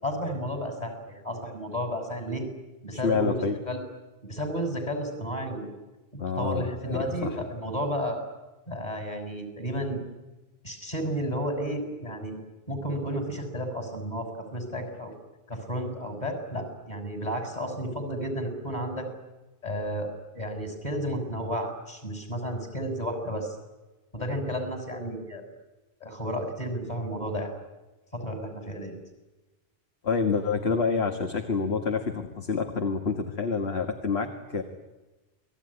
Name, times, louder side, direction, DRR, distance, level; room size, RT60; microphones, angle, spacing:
voice 1, 0.0-2.5 2.8-3.8 4.2-5.7 6.1-8.2 8.7-10.0 10.6-12.4 12.7-15.1 15.5-19.1 19.6-20.1 20.3-23.6 24.1-25.4 26.0-27.5 28.1-29.0, equal, 35° left, 6 dB, 6.6 m, -32 dB
voice 2, 2.9-3.6 6.2-7.4 30.0-34.6, left 5 dB, 60° left, 4 dB, 2.1 m, -28 dB
29.0 x 20.5 x 10.0 m, 1.1 s
omnidirectional pair, 1.2 m